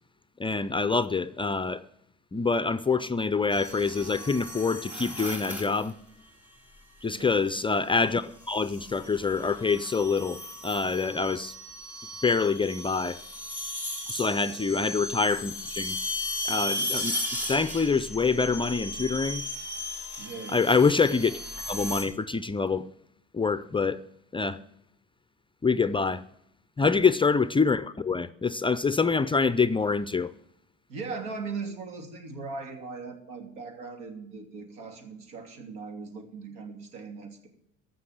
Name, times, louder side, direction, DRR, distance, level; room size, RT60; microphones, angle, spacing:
voice 1, 0.4-1.8 2.3-5.9 7.0-10.4 10.6-11.5 12.2-13.2 14.1-16.0 16.5-17.2 17.5-19.4 20.5-21.3 21.7-22.8 23.3-24.0 24.3-24.6 25.6-26.2 26.8-30.3, left 4 dB, 15° left, 0.5 m, -25 dB
sound 1, 3.5-5.9 7.3-7.7 8.5-22.0, left 1 dB, 5° right, 4.0 m, -36 dB
voice 2, 7.0-7.4 14.4-14.6 20.2-20.7 26.8-27.1 30.9-37.5, right 4 dB, 75° right, 2.9 m, -39 dB
15.0 x 6.1 x 9.9 m
supercardioid pair, 95°, 33 cm